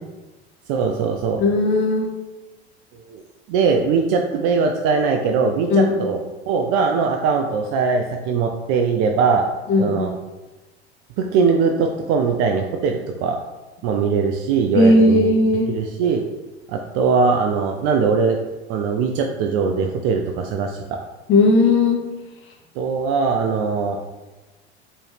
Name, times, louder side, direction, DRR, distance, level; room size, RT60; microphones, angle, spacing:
voice 1, 0.7-1.4 3.1-3.2 3.5-9.4 9.8-10.1 11.2-13.4 13.8-15.2 15.7-16.2 16.7-18.4 18.7-20.8 22.8-24.0, right 5 dB, 45° right, 3 dB, 0.4 m, -21 dB
voice 2, 1.4-2.1 5.7-5.9 9.7-10.0 14.7-15.7 21.3-22.0, left 2 dB, 40° left, 1 dB, 1.1 m, -16 dB
4.3 x 3.1 x 3.3 m, 1.1 s
figure-of-eight pair, 75°, 33 cm